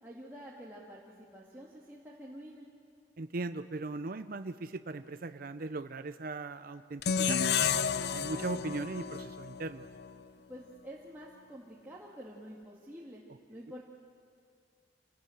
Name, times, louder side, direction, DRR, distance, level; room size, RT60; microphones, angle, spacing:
voice 1, 0.0-2.7 10.5-13.2 13.5-13.8, equal, 10° right, -5 dB, 2.1 m, -48 dB
voice 2, 3.2-7.4 8.1-9.9, right 3 dB, 55° right, 10 dB, 0.6 m, -38 dB
sound 1, 7.0-10.2, left 7 dB, 65° left, 0.6 m, -31 dB
27.0 x 18.5 x 7.9 m, 2.2 s
head